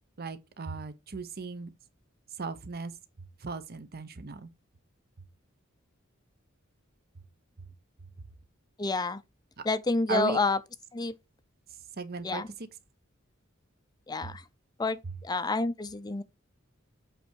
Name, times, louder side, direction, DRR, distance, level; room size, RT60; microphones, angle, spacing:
voice 1, 0.2-1.7 2.4-2.9 3.4-4.5 9.6-9.7 10.1-10.4 12.0-12.7 14.2-14.3, right 4 dB, 50° right, 0.8 m, -36 dB
voice 2, 8.8-9.2 9.6-10.6 10.9-11.1 12.2-12.5 14.1-14.4 14.8-16.2, left 3 dB, 20° left, 0.5 m, -29 dB
7.8 x 3.5 x 4.5 m
head